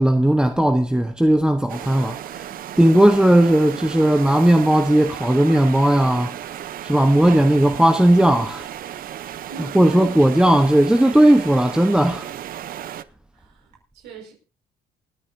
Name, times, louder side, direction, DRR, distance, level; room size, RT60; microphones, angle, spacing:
voice 1, 0.0-2.5 2.8-6.4 6.8-8.7 9.7-12.3, right 1 dB, 5° right, 1.0 m, -16 dB
sound 1, 1.7-13.0, right 11 dB, 60° right, 0.8 m, -34 dB
voice 2, 9.5-10.1 13.3-14.3, right 5 dB, 85° right, 5.6 m, -40 dB
28.0 x 9.6 x 2.7 m
cardioid pair, 110°, 17 cm